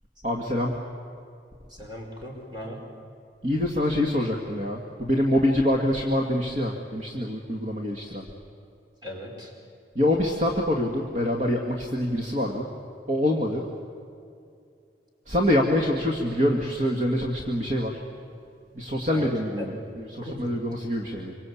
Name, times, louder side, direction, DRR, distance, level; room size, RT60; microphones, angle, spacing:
voice 1, 0.2-0.8 3.4-8.3 10.0-12.7 13.1-13.7 15.3-18.0 18.7-21.3, left 1 dB, 45° right, 1 dB, 2.0 m, -25 dB
voice 2, 1.7-2.8 9.0-9.5 19.1-19.3 19.6-19.8 20.2-20.5, equal, 25° right, -1 dB, 5.2 m, -37 dB
26.5 x 24.0 x 8.6 m, 2.4 s
head